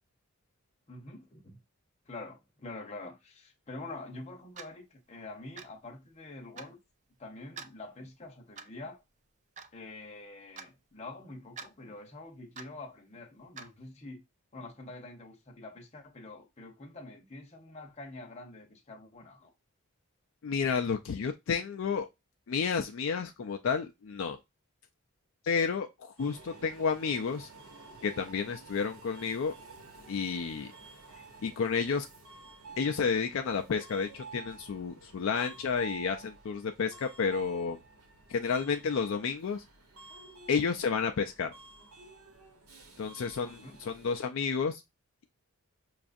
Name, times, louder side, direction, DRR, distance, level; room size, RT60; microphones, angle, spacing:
voice 1, 0.9-1.6 2.1-6.8 7.2-9.0 9.7-14.2 14.5-19.5 43.4-43.8, left 2 dB, 30° left, 0.8 m, -46 dB
Clock, 4.6-4.8 5.6-5.8 6.6-6.7 7.6-7.7 8.6-8.8 9.6-9.7 10.6-10.7 11.6-11.7 12.6-12.8 13.6-13.7, right 5 dB, 35° right, 0.3 m, -45 dB
voice 2, 20.4-22.1 22.5-24.4 25.4-27.5 28.0-29.5 30.1-30.7 31.4-32.1 32.8-37.8 38.3-39.6 40.5-41.5 43.0-44.8, left 5 dB, 60° left, 0.4 m, -31 dB
Subway metro underground, 26.2-44.2, right 4 dB, 75° right, 1.1 m, -51 dB
5.9 x 2.4 x 2.5 m
head